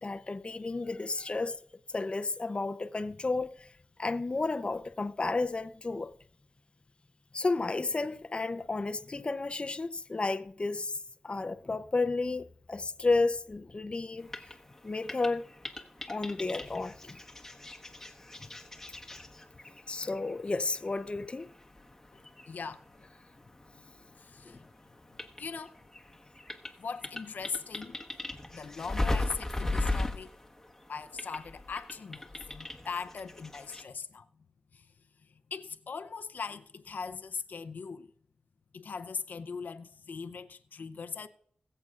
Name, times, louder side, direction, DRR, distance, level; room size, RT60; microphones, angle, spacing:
voice 1, 0.0-1.6 1.9-3.7 4.0-6.1 7.3-11.0 11.2-14.5 14.8-15.5 16.1-17.2 19.9-21.5 24.4-24.6, left 3 dB, 40° left, 0.6 m, -32 dB
sound 1, 14.2-24.2 24.5-33.8, left 2 dB, 15° left, 1.2 m, -38 dB
voice 2, 22.5-23.1 24.2-24.6 25.4-25.7 26.8-28.0 28.5-30.3 30.9-34.3 34.7-34.9 35.5-38.1 38.7-41.3, left 5 dB, 85° left, 0.6 m, -40 dB
21.5 x 7.8 x 2.4 m
wide cardioid pair, 70°, 3 cm